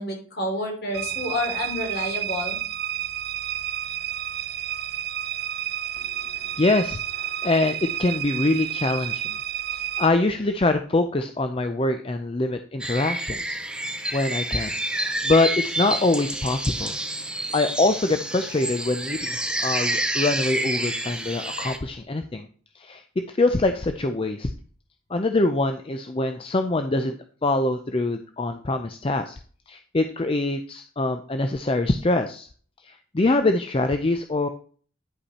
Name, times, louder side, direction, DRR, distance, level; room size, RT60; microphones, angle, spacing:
voice 1, 0.0-2.6, left 1 dB, 55° left, 1 dB, 3.2 m, -29 dB
sound 1, 0.9-10.1, right 12 dB, 55° right, 0.5 m, -30 dB
voice 2, 6.6-9.4 10.0-13.6 13.9-17.0 17.5-22.5 22.8-23.0 23.3-24.5 25.1-29.4 29.7-32.5 32.8-34.5, left 2 dB, 30° left, 7 dB, 0.5 m, -24 dB
sound 2, 12.8-21.8, right 1 dB, 5° right, 0.8 m, -29 dB
10.0 x 5.4 x 4.2 m, 0.43 s
head